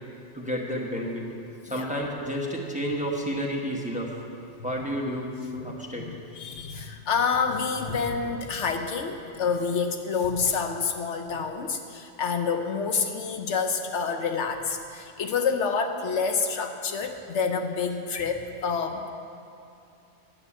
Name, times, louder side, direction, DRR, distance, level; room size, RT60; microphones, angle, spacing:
voice 1, 0.3-1.3 1.7-4.2 4.6-6.1, equal, 5° right, -1 dB, 1.0 m, -30 dB
voice 2, 6.1-19.1, left 5 dB, 70° left, 5 dB, 1.0 m, -28 dB
9.7 x 7.0 x 8.5 m, 2.6 s
omnidirectional pair, 1.3 m